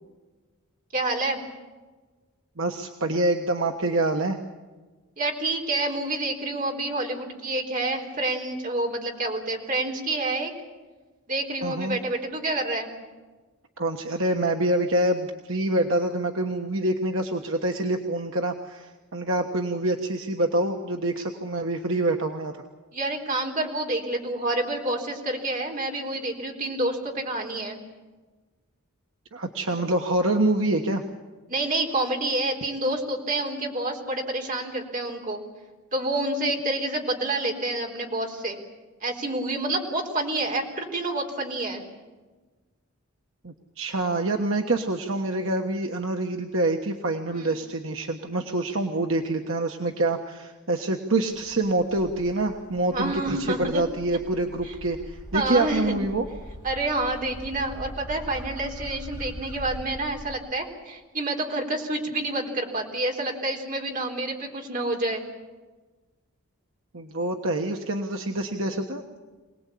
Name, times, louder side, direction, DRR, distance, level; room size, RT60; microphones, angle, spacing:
voice 1, 0.9-1.4 5.2-10.5 11.3-12.9 22.9-27.8 31.5-35.4 35.9-38.6 39.0-41.8 47.3-47.6 52.9-53.8 54.6-54.7 55.3-56.0 56.6-65.2 68.6-68.9, right 2 dB, 35° right, 1 dB, 3.8 m, -28 dB
voice 2, 2.6-4.4 11.6-12.0 13.8-22.6 29.3-31.0 43.4-56.3 66.9-69.2, right 2 dB, 65° right, 3 dB, 1.3 m, -26 dB
sound 1, 51.3-60.3, equal, 20° right, 7.9 m, -42 dB
25.5 x 19.0 x 8.5 m, 1.3 s
head